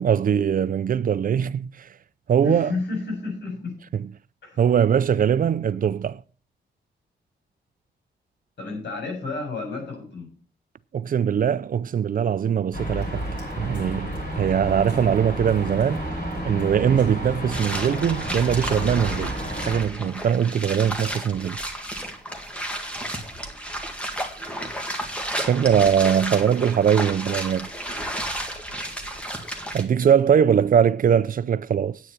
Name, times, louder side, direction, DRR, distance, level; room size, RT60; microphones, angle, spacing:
voice 1, 0.0-1.9 2.3-2.7 4.6-6.2 10.9-13.2 13.6-16.0 16.4-19.3 19.7-21.6 25.5-27.7 29.7-32.0, right 8 dB, 50° right, 0.4 m, -21 dB
voice 2, 2.4-3.8 4.4-4.6 5.7-5.8 8.6-10.3, left 3 dB, 70° left, 7.4 m, -31 dB
sound 1, 12.7-19.8, equal, 50° left, 6.4 m, -31 dB
sound 2, 17.5-29.8, equal, 5° left, 1.8 m, -32 dB
9.7 x 8.7 x 5.8 m
wide cardioid pair, 145°, 18 cm